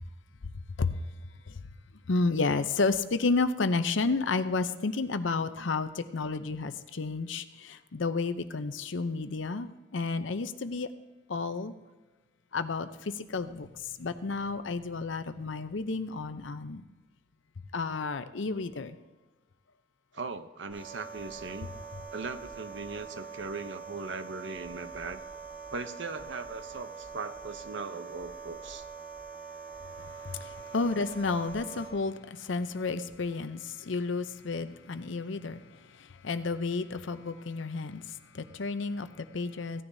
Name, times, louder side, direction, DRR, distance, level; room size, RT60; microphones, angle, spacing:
voice 1, 2.1-10.9 11.3-11.7 12.5-13.7 14.0-16.8 17.7-19.0 30.3-35.6 36.2-38.0 38.3-39.8, left 3 dB, 75° left, 11 dB, 0.6 m, -31 dB
voice 2, 20.1-21.7 22.1-25.2 25.7-28.8 30.3-30.4, right 4 dB, 65° right, 10 dB, 0.7 m, -39 dB
sound 1, 20.7-31.9, right 5 dB, 5° right, 3.9 m, -44 dB
16.5 x 10.0 x 2.7 m, 1.2 s
head